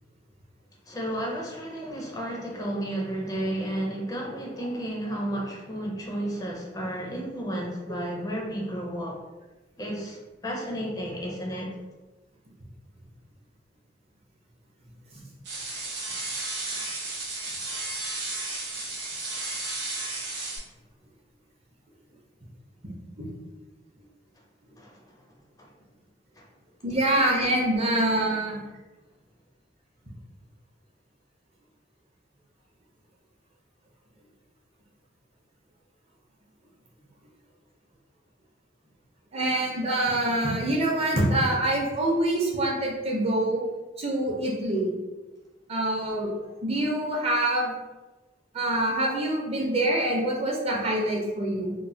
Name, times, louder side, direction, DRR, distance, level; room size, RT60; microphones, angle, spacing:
voice 1, 0.9-9.2 9.8-11.7 24.8-25.0 25.6-25.7 26.4-26.5, right 1 dB, 20° left, -2 dB, 0.4 m, -32 dB
sound 1, 15.4-20.6, right 2 dB, 85° right, 0.9 m, -33 dB
voice 2, 26.8-28.6 39.3-43.6 44.0-44.9 45.7-46.3 46.6-47.7 48.5-51.7, right 1 dB, 35° right, -2 dB, 0.6 m, -25 dB
2.9 x 2.1 x 2.7 m, 1.2 s
head